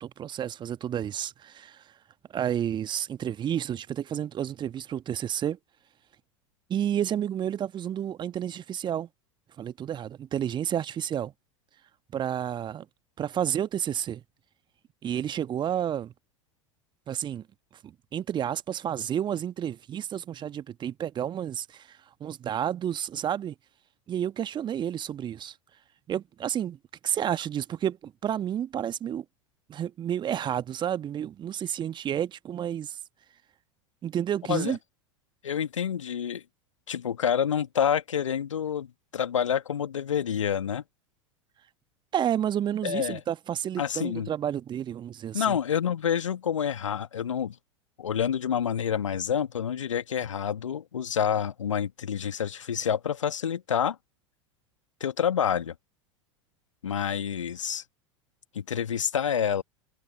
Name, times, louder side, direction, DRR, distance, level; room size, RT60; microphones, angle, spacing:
voice 1, 0.0-1.8 2.3-5.6 6.7-9.1 9.6-11.3 12.1-12.8 13.2-14.2 15.0-16.1 17.1-17.4 17.8-23.5 24.1-25.5 26.1-26.8 27.0-29.2 29.7-33.0 34.0-34.8 42.1-45.5, right 10 dB, 30° right, 1.4 m, -30 dB
voice 2, 35.4-36.4 36.9-40.8 42.8-43.2 43.8-44.3 45.3-47.6 48.0-54.0 55.0-55.7 56.8-57.8 58.5-59.6, left 8 dB, 75° left, 1.8 m, -28 dB
figure-of-eight pair, 85°, 16 cm